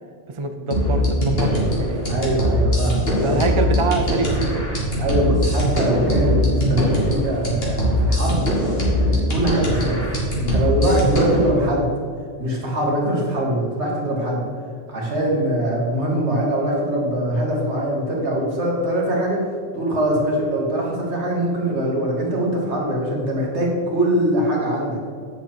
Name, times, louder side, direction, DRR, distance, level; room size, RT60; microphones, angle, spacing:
voice 1, 0.3-2.4 3.2-4.7, right 3 dB, 35° right, 6 dB, 0.5 m, -25 dB
sound 1, 0.7-11.5, equal, 55° left, 2.3 m, -21 dB
voice 2, 2.1-3.4 5.0-8.4 9.0-11.9 12.4-14.4 14.9-19.4 19.7-25.0, right 1 dB, 70° right, -3 dB, 2.2 m, -22 dB
8.5 x 7.0 x 4.5 m, 2.2 s
omnidirectional pair, 1.2 m